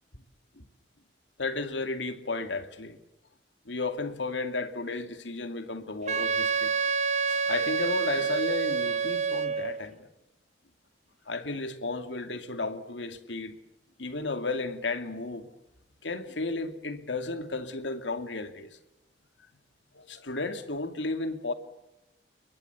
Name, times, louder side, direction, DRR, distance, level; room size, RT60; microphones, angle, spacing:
voice 1, 1.4-3.0 3.7-6.7 7.3-10.1 11.3-13.5 14.0-15.5 16.0-18.7 19.9-21.5, left 3 dB, 85° left, 2.4 m, -33 dB
Wind instrument woodwind instrument, 6.1-9.8, right 5 dB, 40° right, 0.9 m, -28 dB
29.5 x 23.0 x 7.0 m
head